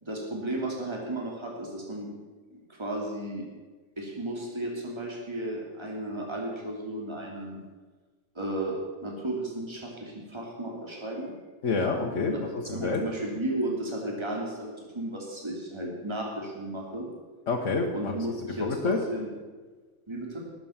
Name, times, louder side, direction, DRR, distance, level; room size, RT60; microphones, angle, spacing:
voice 1, 0.0-2.1 2.7-3.5 4.0-7.6 8.3-8.7 9.0-11.3 12.3-12.4 12.6-17.1 17.9-19.3 20.1-20.4, right 1 dB, 20° right, -1 dB, 3.0 m, -34 dB
voice 2, 11.6-13.0 17.5-18.1 18.6-19.0, left 4 dB, 65° left, 0 dB, 1.6 m, -28 dB
18.5 x 7.8 x 7.2 m, 1.3 s
omnidirectional pair, 1.4 m